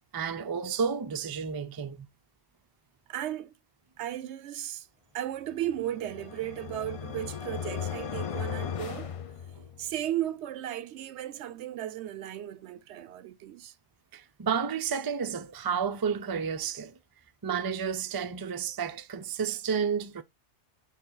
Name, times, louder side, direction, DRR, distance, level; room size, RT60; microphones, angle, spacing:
voice 1, 0.1-2.1 9.6-9.7 14.1-17.0 17.4-20.2, right 6 dB, 40° right, 0.3 m, -31 dB
voice 2, 3.1-3.6 4.0-4.9 5.1-9.1 9.8-13.8, right 12 dB, 75° right, 0.9 m, -35 dB
sound 1, 5.6-10.0, left 8 dB, 50° left, 0.4 m, -37 dB
9.2 x 3.4 x 3.8 m
omnidirectional pair, 1.2 m